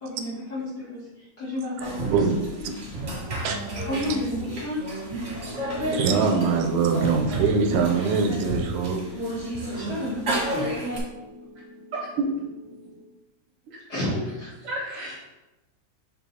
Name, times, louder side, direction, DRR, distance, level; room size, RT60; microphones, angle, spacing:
voice 1, 0.0-1.0 1.4-2.2 3.9-4.8 5.7-5.9 9.7-10.3 13.9-14.5, left 1 dB, 40° left, -8 dB, 1.7 m, -31 dB
sound 1, 1.8-11.0, right 1 dB, 35° right, 1.3 m, -31 dB
voice 2, 3.4-3.8 5.9-9.0, right 5 dB, 85° right, 4 dB, 2.1 m, -23 dB
sound 2, 5.1-13.1, left 2 dB, 80° left, 2.1 m, -45 dB
voice 3, 11.9-12.2 12.7-12.9 13.7-13.8 14.6-15.2, right 3 dB, 60° right, -3 dB, 1.6 m, -32 dB
6.6 x 4.0 x 4.1 m, 1.0 s
omnidirectional pair, 3.5 m